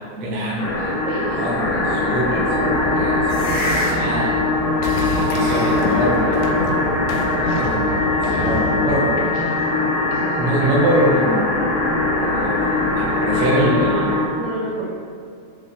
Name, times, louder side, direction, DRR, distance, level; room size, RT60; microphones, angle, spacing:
voice 1, 0.1-4.4 4.9-6.8 7.2-8.0 8.2-9.2 10.4-11.5 12.0-14.3, right 1 dB, 70° right, -5 dB, 3.2 m, -24 dB
sound 1, 0.6-14.3, left 2 dB, 75° left, 4.2 m, -21 dB
voice 2, 1.0-1.5 9.2-9.7 10.1-10.4 14.4-14.9, right 2 dB, 85° right, -4 dB, 2.2 m, -30 dB
sound 2, 2.5-9.1, equal, 50° left, 2.7 m, -26 dB
sound 3, 4.8-10.6, left 3 dB, 90° left, 2.3 m, -30 dB
14.5 x 5.2 x 3.3 m, 2.4 s
omnidirectional pair, 5.7 m